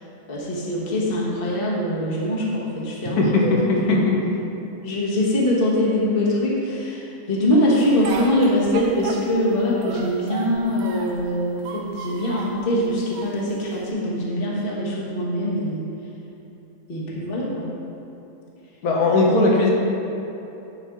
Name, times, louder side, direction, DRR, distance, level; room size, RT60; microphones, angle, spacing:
voice 1, 0.3-3.5 4.8-15.8 16.9-17.7, left 1 dB, 40° left, -5 dB, 1.3 m, -23 dB
voice 2, 3.2-4.0 17.1-17.2 18.8-19.7, left 2 dB, 80° left, -3 dB, 1.5 m, -18 dB
Speech, 7.8-9.5 9.8-11.2 11.6-12.6 13.1-13.9, right 4 dB, 75° right, 1.1 m, -34 dB
10.5 x 4.5 x 3.6 m, 3.0 s
omnidirectional pair, 1.6 m